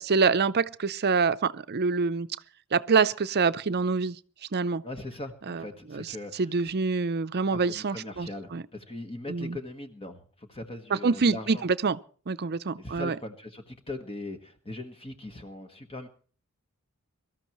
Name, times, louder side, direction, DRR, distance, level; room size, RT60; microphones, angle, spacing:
voice 1, 0.0-2.3 2.7-4.2 4.5-4.8 5.5-5.6 5.9-6.1 6.3-8.6 9.3-9.6 10.9-12.0 12.3-13.2, right 4 dB, 50° right, 0.6 m, -26 dB
voice 2, 4.8-6.5 7.5-11.6 12.8-16.1, left 2 dB, 25° left, 1.4 m, -40 dB
24.0 x 13.5 x 3.1 m
head